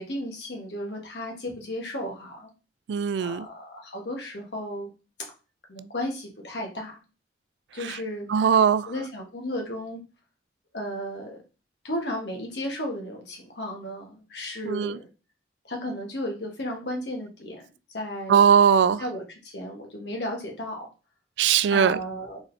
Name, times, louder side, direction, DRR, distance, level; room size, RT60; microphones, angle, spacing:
voice 1, 0.0-2.5 3.2-4.9 5.7-7.0 7.7-8.5 8.9-10.0 10.7-11.4 11.8-15.1 15.7-17.6 17.9-18.4 19.0-20.9 21.7-22.4, left 1 dB, 75° left, 1.5 m, -34 dB
voice 2, 2.9-3.5 8.3-8.9 14.6-15.0 18.3-19.0 21.4-22.0, right 7 dB, 80° right, 0.3 m, -20 dB
4.0 x 3.3 x 4.0 m
head